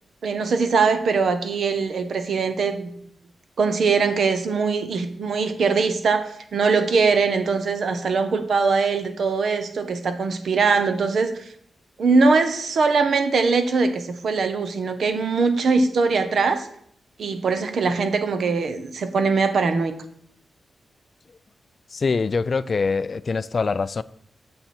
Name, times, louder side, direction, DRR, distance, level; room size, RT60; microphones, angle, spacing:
voice 1, 0.2-2.9 3.6-11.3 12.0-16.7 17.2-19.9, right 4 dB, 60° right, 1.0 m, -21 dB
voice 2, 21.9-24.0, left 4 dB, 35° left, 0.3 m, -24 dB
9.3 x 7.8 x 4.4 m
wide cardioid pair, 175°, 0 cm